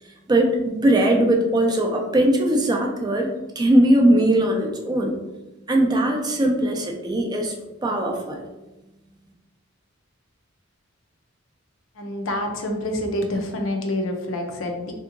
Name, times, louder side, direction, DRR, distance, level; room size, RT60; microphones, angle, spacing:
voice 1, 0.3-3.3 3.6-5.1 5.7-7.5 7.8-8.4, right 1 dB, 20° right, 1 dB, 0.4 m, -20 dB
voice 2, 12.0-14.9, left 1 dB, 70° left, 3 dB, 0.5 m, -27 dB
3.4 x 2.8 x 2.5 m, 1.0 s
head